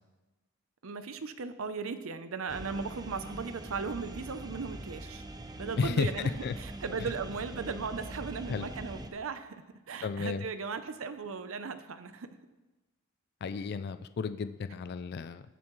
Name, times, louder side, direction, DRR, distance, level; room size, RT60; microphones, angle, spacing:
voice 1, 0.8-5.2 5.6-12.3, right 5 dB, 70° right, 10 dB, 0.6 m, -37 dB
sound 1, 2.5-9.1, right 1 dB, 20° right, 0.6 m, -43 dB
voice 2, 5.8-6.1 6.4-6.5 8.5-8.7 10.0-10.4 13.4-15.4, left 5 dB, 50° left, 11 dB, 0.4 m, -32 dB
19.5 x 7.1 x 3.1 m, 1.1 s
head